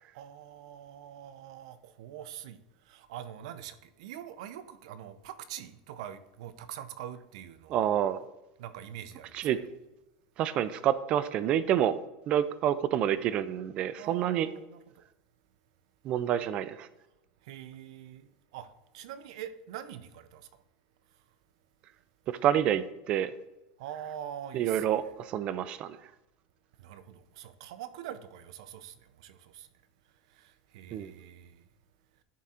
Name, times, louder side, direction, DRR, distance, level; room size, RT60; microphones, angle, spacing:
voice 1, 0.1-8.0 8.6-9.5 14.0-15.0 17.4-20.6 23.8-25.0 26.8-29.7 30.3-31.6, right 10 dB, 70° right, 0.6 m, -44 dB
voice 2, 7.7-8.2 9.3-9.6 10.4-12.0 12.3-14.5 16.0-16.9 22.4-23.3 24.5-26.0 30.9-31.1, right 10 dB, 30° right, 0.4 m, -28 dB
11.0 x 3.7 x 4.3 m
supercardioid pair, 170°, 4 cm